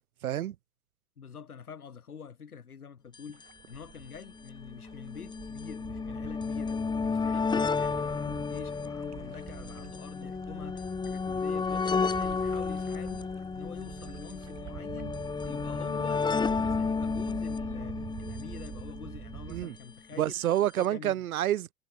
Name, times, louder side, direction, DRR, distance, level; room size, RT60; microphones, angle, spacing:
voice 1, 0.2-0.5 19.5-19.7 20.2-21.7, right 12 dB, 70° right, 3.2 m, -28 dB
voice 2, 1.2-13.2 13.5-15.2 15.4-20.3 20.8-21.2, left 6 dB, 85° left, 5.0 m, -46 dB
sound 1, 3.1-3.2 3.4-3.5 4.4-19.6 20.6-20.7 20.8-20.9, left 5 dB, 10° left, 0.7 m, -32 dB
sound 2, 3.3-19.6, right 13 dB, 35° right, 2.3 m, -46 dB
figure-of-eight pair, 80°, 43 cm